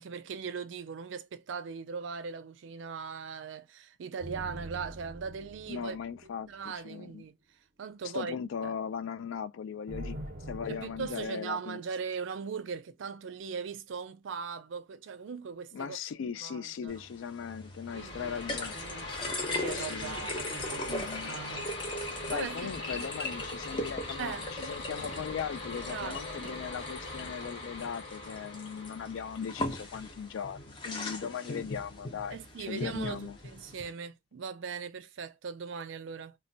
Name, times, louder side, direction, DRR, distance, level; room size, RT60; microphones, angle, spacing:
voice 1, 0.0-6.0 6.5-7.3 7.8-8.4 8.6-8.7 10.7-16.0 16.4-17.0 17.9-21.7 22.3-23.1 24.2-24.5 25.7-26.6 32.3-36.4, right 6 dB, 75° right, 0.4 m, -40 dB
sound 1, 4.2-6.9 9.9-11.3, right 1 dB, 40° right, 0.7 m, -44 dB
voice 2, 5.7-7.2 8.1-10.2 10.5-11.8 15.7-18.8 19.7-20.3 20.9-21.4 22.3-32.4 32.7-33.4, left 7 dB, 85° left, 0.3 m, -38 dB
sound 2, 16.9-33.9, left 2 dB, 25° left, 0.5 m, -40 dB
sound 3, 17.8-31.2, left 2 dB, 55° left, 1.1 m, -42 dB
2.2 x 2.1 x 3.8 m
head